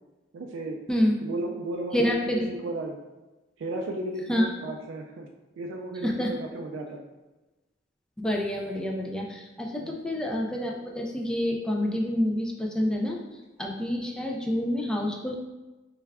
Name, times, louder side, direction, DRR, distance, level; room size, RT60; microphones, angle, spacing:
voice 1, 0.3-0.8 1.2-3.0 3.6-5.3 5.6-7.0 9.8-10.0, right 2 dB, 80° right, 2 dB, 0.3 m, -34 dB
voice 2, 1.9-2.5 4.3-4.5 6.0-6.3 8.2-13.2 13.6-15.4, left 1 dB, 5° left, -1 dB, 0.3 m, -27 dB
3.3 x 2.2 x 3.4 m, 1.1 s
head